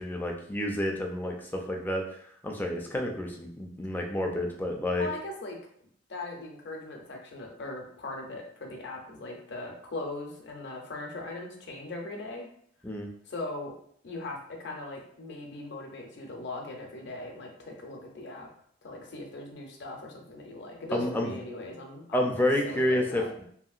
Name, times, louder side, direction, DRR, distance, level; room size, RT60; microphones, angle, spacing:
voice 1, 0.0-2.0 2.4-5.1 12.8-13.1 20.9-21.3 22.1-23.2, left 1 dB, 10° left, 1 dB, 0.3 m, -29 dB
voice 2, 5.0-5.6 6.1-12.5 13.3-13.7 14.0-18.5 18.8-22.3 22.6-23.3, left 2 dB, 60° left, 1 dB, 0.6 m, -39 dB
2.8 x 2.8 x 2.4 m, 0.64 s
head